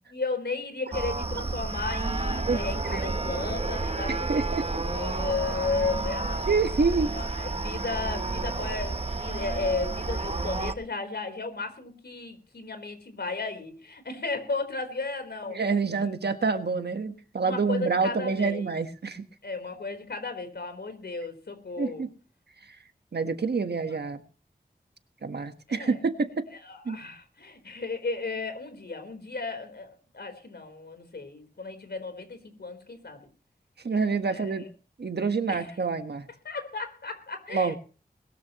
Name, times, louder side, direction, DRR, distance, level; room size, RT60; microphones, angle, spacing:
voice 1, 0.1-4.3 4.5-6.5 7.0-15.6 15.9-16.1 17.4-18.8 19.4-22.0 23.9-24.0 25.7-26.0 26.6-33.2 34.3-34.5 35.5-35.8 36.4-37.8, left 3 dB, 80° left, 7 dB, 4.3 m, -34 dB
sound 1, 0.9-10.7, right 3 dB, 35° right, 1.0 m, -31 dB
voice 2, 4.1-4.8 6.5-7.1 15.5-19.2 21.8-22.1 22.6-22.8 23.1-24.2 25.2-26.4 26.8-27.0 33.8-34.6 35.0-36.3 37.5-37.8, right 4 dB, 80° right, 8 dB, 1.5 m, -27 dB
21.0 x 12.5 x 3.1 m, 0.37 s
wide cardioid pair, 80°, 17 cm